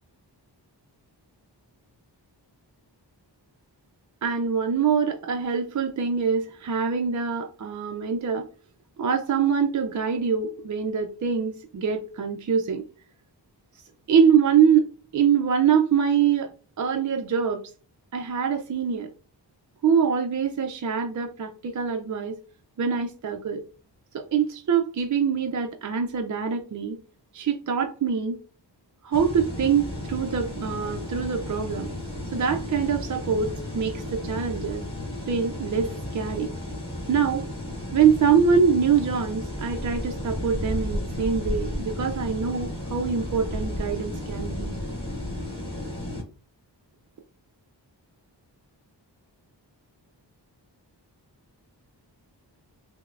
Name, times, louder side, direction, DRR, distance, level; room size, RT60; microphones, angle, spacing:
voice 1, 4.2-8.5 9.0-12.8 14.1-14.9 15.1-16.5 16.8-17.6 18.1-19.1 19.8-22.4 22.8-23.6 24.1-27.0 27.3-28.4 29.0-31.9 32.3-34.8 35.3-36.5 37.1-37.5 37.9-44.8, right 6 dB, 45° right, 3 dB, 0.4 m, -24 dB
sound 1, 29.1-46.2, left 1 dB, 10° left, 1.6 m, -33 dB
6.1 x 2.1 x 2.4 m, 0.38 s
wide cardioid pair, 75°, 43 cm